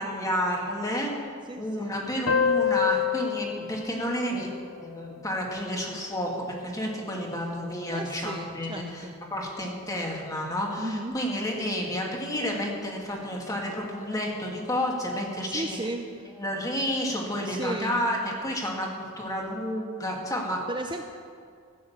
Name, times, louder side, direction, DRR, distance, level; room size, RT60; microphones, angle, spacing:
voice 1, 0.0-4.5 4.8-15.8 16.4-20.7, equal, 15° left, -1 dB, 2.1 m, -30 dB
voice 2, 1.5-2.0 7.9-9.1 10.8-11.2 15.4-16.3 17.4-18.0 18.6-18.7 20.7-21.0, right 1 dB, 20° right, 3 dB, 0.6 m, -35 dB
sound 1, 2.3-5.4, left 8 dB, 70° left, 0.7 m, -28 dB
15.0 x 9.3 x 7.3 m, 2.2 s
head